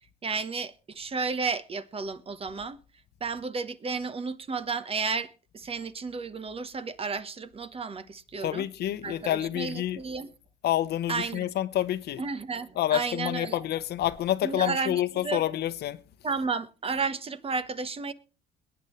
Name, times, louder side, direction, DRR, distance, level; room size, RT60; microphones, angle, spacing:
voice 1, 0.2-2.8 3.2-8.7 9.0-10.3 11.1-11.5 12.2-13.6 14.4-15.4 16.2-18.1, right 4 dB, 30° right, 1.2 m, -32 dB
voice 2, 8.4-10.0 10.6-12.2 12.8-16.0, left 12 dB, 60° left, 1.0 m, -28 dB
22.0 x 9.1 x 3.2 m
supercardioid pair, 85°, 19 cm